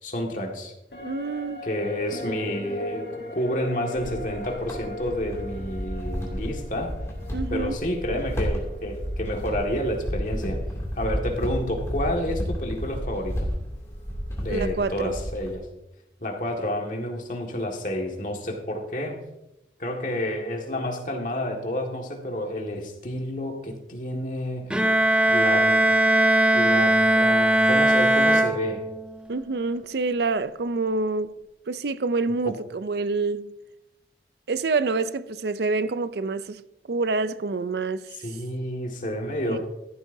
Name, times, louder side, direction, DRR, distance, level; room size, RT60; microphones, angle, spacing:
voice 1, 0.0-0.7 1.6-3.1 3.3-6.9 7.5-10.6 11.0-13.4 14.4-15.7 16.2-19.2 19.8-24.9 25.3-25.8 26.5-28.8 32.4-32.5 38.2-39.6, left 1 dB, 45° left, 1.8 m, -29 dB
sound 1, 0.9-10.4 10.7-10.8, left 1 dB, 70° left, 1.8 m, -40 dB
voice 2, 1.0-1.6 7.3-7.8 14.5-15.2 29.3-31.4 31.7-33.5 34.5-36.6 36.9-38.1 39.5-39.6, right 3 dB, 70° right, 0.5 m, -27 dB
sound 2, 3.9-15.5, equal, 15° left, 2.6 m, -32 dB
Bowed string instrument, 24.7-29.2, right 1 dB, 5° right, 0.5 m, -19 dB
13.5 x 12.0 x 2.7 m
head